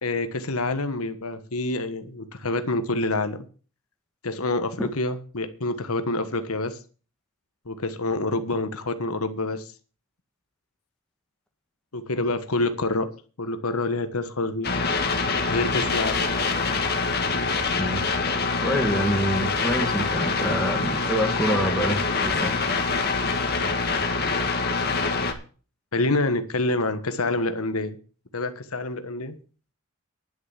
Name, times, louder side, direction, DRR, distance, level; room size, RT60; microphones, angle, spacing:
voice 1, 0.0-3.4 4.2-6.8 7.7-9.6 11.9-13.1 13.4-14.7 15.5-16.2 25.9-28.0 28.3-29.4, left 2 dB, 80° left, 1.3 m, -27 dB
sound 1, 14.6-25.3, left 4 dB, 45° left, 1.9 m, -25 dB
voice 2, 17.7-18.0 18.6-22.6, equal, 5° left, 1.8 m, -26 dB
11.0 x 6.7 x 9.1 m
head